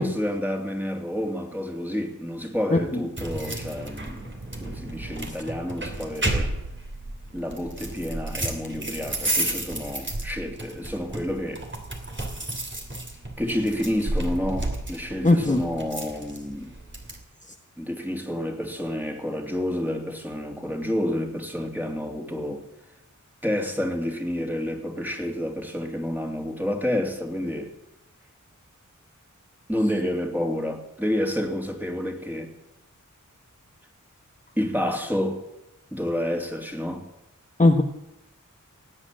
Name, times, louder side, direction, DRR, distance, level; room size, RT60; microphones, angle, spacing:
voice 1, 0.0-4.2 4.6-6.5 7.3-11.6 13.4-16.7 17.8-22.6 23.4-27.7 29.7-32.5 34.5-35.4 35.9-37.1, left 1 dB, 5° right, 3.1 m, -29 dB
voice 2, 2.7-3.0 15.2-15.6 37.6-37.8, left 2 dB, 25° left, 1.2 m, -19 dB
sound 1, 3.2-17.2, right 1 dB, 35° right, 3.1 m, -32 dB
18.0 x 8.3 x 8.8 m
wide cardioid pair, 55°, 31 cm